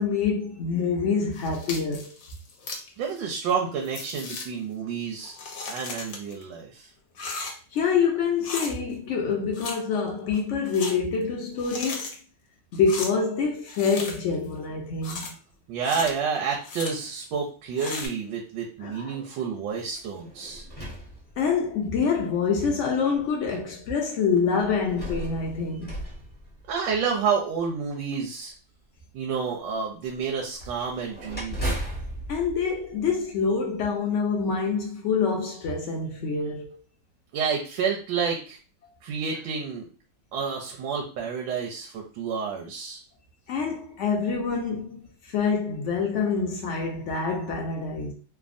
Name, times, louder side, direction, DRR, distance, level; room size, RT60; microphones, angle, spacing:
voice 1, 0.0-2.1 7.7-12.1 12.7-15.3 18.8-19.2 21.4-25.9 32.3-36.7 43.5-48.1, left 5 dB, 80° left, 0.6 m, -26 dB
sound 1, 1.3-2.9 3.5-3.6 3.8-4.4 5.2-6.4 7.1-7.8 8.4-8.7 9.5-9.8 10.1-10.9 11.6-12.2 12.7-13.1 13.7-14.3 15.0-15.3 15.8-16.1 16.6-16.9 17.8-18.1, left 4 dB, 65° left, 1.0 m, -36 dB
voice 2, 3.0-5.4 5.7-6.9 15.7-20.6 26.7-28.5 29.1-31.6 37.3-38.6 39.0-39.9 40.3-43.0, right 6 dB, 85° right, 1.3 m, -29 dB
sound 2, 19.9-21.9 22.7-22.8 24.6-27.2 30.6-33.6, right 1 dB, 10° left, 0.5 m, -36 dB
3.4 x 2.1 x 2.5 m
omnidirectional pair, 1.9 m